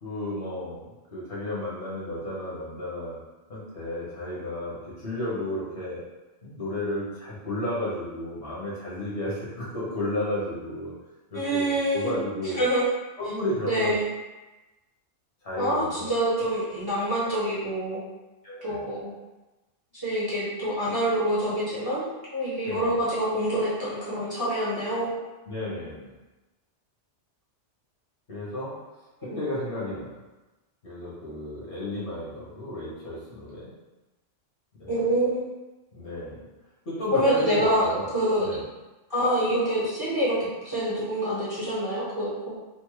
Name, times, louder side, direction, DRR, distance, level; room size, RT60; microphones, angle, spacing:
voice 1, 0.0-3.2 3.5-6.0 6.4-10.9 11.3-12.7 13.2-13.9 15.4-16.1 16.4-16.5 18.4-18.9 22.6-23.0 25.5-26.2 28.3-28.7 29.2-30.2 30.8-33.7 34.8-35.0 35.9-36.5 36.8-38.1 38.4-38.6, left 1 dB, 65° left, -8 dB, 1.5 m, -33 dB
voice 2, 11.3-12.1 12.6-12.8 13.6-14.0 15.6-18.0 18.6-19.1 20.0-25.1 29.2-29.4 34.9-35.4 37.1-38.5 39.1-42.6, right 1 dB, 20° right, -9 dB, 0.8 m, -26 dB
3.4 x 2.1 x 3.1 m, 1.1 s
omnidirectional pair, 1.2 m